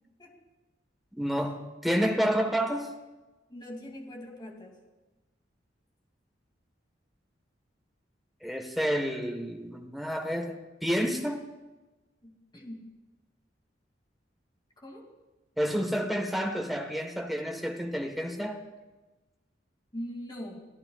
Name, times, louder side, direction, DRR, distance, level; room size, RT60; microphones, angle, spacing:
voice 1, 1.2-2.9 8.4-11.5 15.6-18.6, equal, ahead, 3 dB, 1.4 m, -29 dB
voice 2, 3.5-4.8 12.2-12.8 14.8-15.1 19.9-20.7, equal, 25° left, 0 dB, 2.7 m, -41 dB
26.5 x 16.5 x 2.5 m, 1.2 s
head